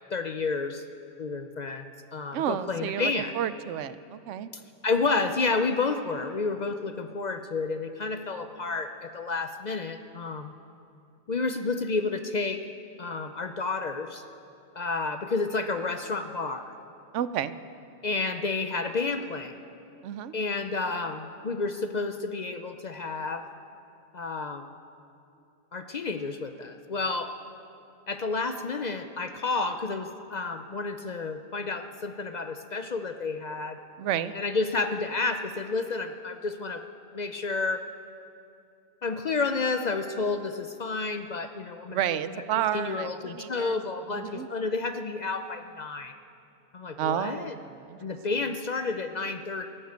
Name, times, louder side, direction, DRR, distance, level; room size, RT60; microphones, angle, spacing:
voice 1, 0.1-0.8 1.2-3.3 4.8-10.5 11.3-12.6 13.0-14.2 14.8-16.7 18.0-19.5 20.3-23.4 24.1-24.7 25.7-27.3 28.1-33.8 34.3-36.8 37.1-37.8 39.0-42.0 42.4-42.5 42.7-46.1 46.7-47.5 48.0-49.7, left 3 dB, 50° left, 8 dB, 0.6 m, -30 dB
voice 2, 2.3-4.5 17.1-17.5 20.0-20.3 34.0-34.4 41.9-43.8 44.1-44.5 47.0-48.0, right 10 dB, 85° right, 14 dB, 0.9 m, -31 dB
14.5 x 11.5 x 8.1 m, 2.6 s
omnidirectional pair, 1.2 m